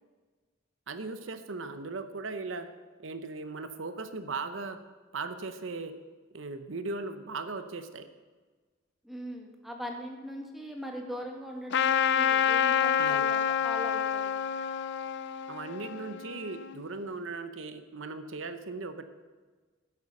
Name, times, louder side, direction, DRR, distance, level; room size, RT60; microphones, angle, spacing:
voice 1, 0.9-2.7 3.0-4.8 5.1-5.9 6.3-8.1 13.0-13.3 15.5-19.0, right 3 dB, 70° right, 10 dB, 0.9 m, -38 dB
voice 2, 9.0-14.4, equal, ahead, 1 dB, 1.8 m, -40 dB
Trumpet, 11.7-16.8, left 8 dB, 60° left, 0.4 m, -28 dB
15.0 x 8.3 x 5.5 m, 1.4 s
head